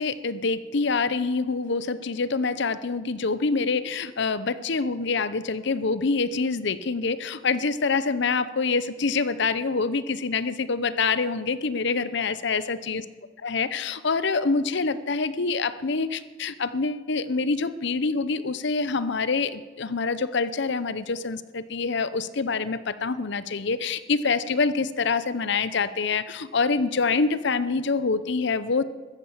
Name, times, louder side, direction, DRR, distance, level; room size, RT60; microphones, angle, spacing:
voice 1, 0.0-13.0 13.4-28.8, left 4 dB, 65° left, 14 dB, 0.7 m, -26 dB
15.0 x 12.5 x 7.3 m, 1.3 s
head